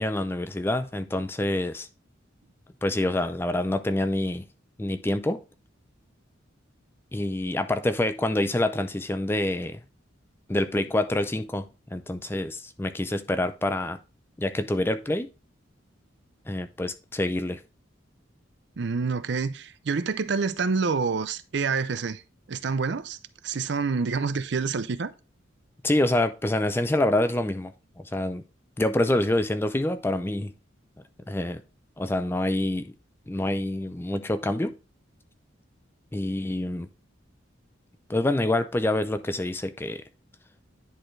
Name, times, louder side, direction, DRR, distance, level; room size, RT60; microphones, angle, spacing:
voice 1, 0.0-1.9 2.8-4.4 4.8-5.4 7.1-9.8 10.5-14.0 14.4-15.3 16.5-17.6 25.8-28.4 28.8-30.5 31.3-31.6 32.0-32.9 33.3-34.7 36.1-36.9 38.1-40.0, left 1 dB, 10° left, 0.4 m, -26 dB
voice 2, 18.8-22.2 22.5-23.2 23.4-25.1, right 5 dB, 60° right, 0.5 m, -27 dB
10.0 x 4.3 x 3.2 m
head